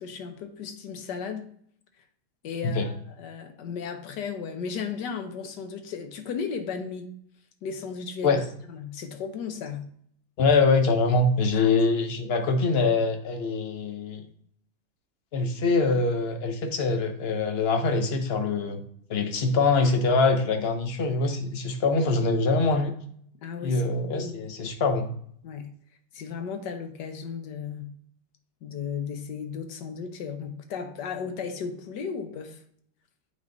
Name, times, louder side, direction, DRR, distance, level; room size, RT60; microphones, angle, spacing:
voice 1, 0.0-1.5 2.4-7.1 7.6-8.3 8.7-9.9 11.5-11.7 23.4-24.4 25.4-25.7 26.1-27.9 28.6-32.6, left 6 dB, 75° left, 7 dB, 1.5 m, -35 dB
voice 2, 10.4-14.2 15.3-18.8 19.1-22.9 23.6-25.1, left 3 dB, 45° left, 6 dB, 0.9 m, -24 dB
8.6 x 3.8 x 3.9 m, 0.63 s
omnidirectional pair, 1.9 m